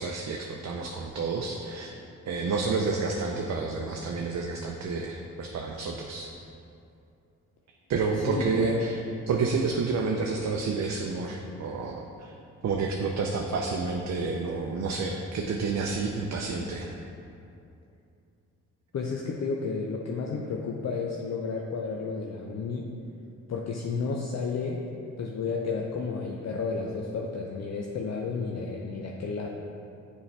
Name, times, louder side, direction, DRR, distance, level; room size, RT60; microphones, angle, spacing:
voice 1, 0.0-1.9 2.3-6.3 7.9-12.3 12.6-17.0, right 4 dB, 50° right, 1 dB, 0.6 m, -29 dB
voice 2, 8.2-8.9 18.9-22.9 23.5-24.9 25.2-29.5, left 4 dB, 50° left, 0 dB, 0.6 m, -32 dB
6.9 x 4.5 x 3.3 m, 2.6 s
supercardioid pair, 55°, 35 cm